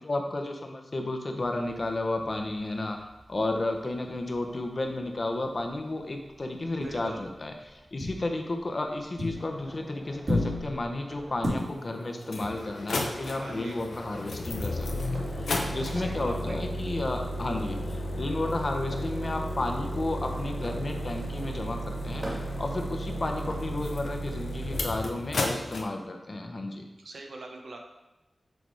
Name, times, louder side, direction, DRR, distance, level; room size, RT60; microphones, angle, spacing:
voice 1, 0.0-3.0 3.3-26.8, left 2 dB, 45° left, 4 dB, 0.8 m, -32 dB
sound 1, 1.4-5.1 5.3-5.7 6.0-9.8 10.1-11.5, left 1 dB, 55° right, 2.2 m, -36 dB
voice 2, 6.8-7.2 13.3-13.8 15.9-16.6 27.0-27.8, right 2 dB, 80° right, 2 dB, 0.9 m, -41 dB
sound 2, 9.3-23.7, equal, 35° right, 2.1 m, -45 dB
sound 3, 11.6-11.7 12.2-25.8, left 1 dB, 85° left, 0.7 m, -33 dB
6.2 x 3.4 x 4.7 m, 1.0 s
wide cardioid pair, 75°, 0 cm